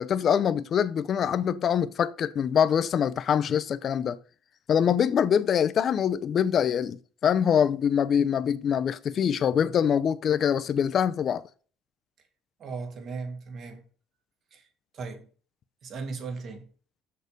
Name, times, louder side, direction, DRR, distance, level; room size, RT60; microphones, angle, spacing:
voice 1, 0.0-4.2 4.7-11.4, left 8 dB, 45° left, 0.6 m, -24 dB
voice 2, 12.6-13.8 14.5-14.7 14.9-15.3 15.8-16.7, right 4 dB, 45° right, 2.3 m, -37 dB
6.6 x 6.6 x 5.2 m
cardioid pair, 120°, 0 cm